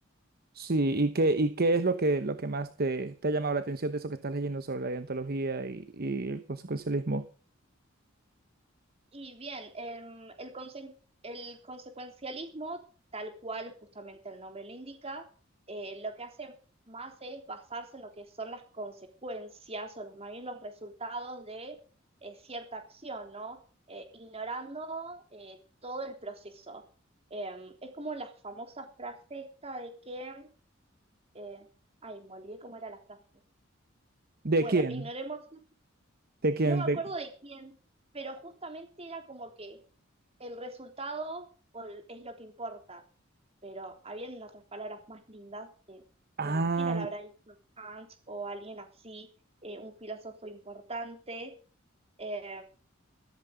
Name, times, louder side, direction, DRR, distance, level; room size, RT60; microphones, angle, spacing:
voice 1, 0.5-7.3 34.4-35.1 36.4-37.0 46.4-47.1, right 2 dB, 50° right, 11 dB, 1.0 m, -28 dB
voice 2, 9.1-10.9 11.2-12.8 13.1-15.2 15.7-16.5 16.9-21.7 22.2-23.6 23.9-26.8 27.3-30.5 31.3-31.7 32.0-33.2 34.6-35.6 36.6-37.7 38.1-39.8 40.4-41.5 41.7-43.0 43.6-46.0 46.4-49.3 49.6-51.5 52.2-52.6, right 2 dB, 30° right, 6 dB, 3.3 m, -41 dB
15.0 x 14.0 x 5.2 m, 0.38 s
head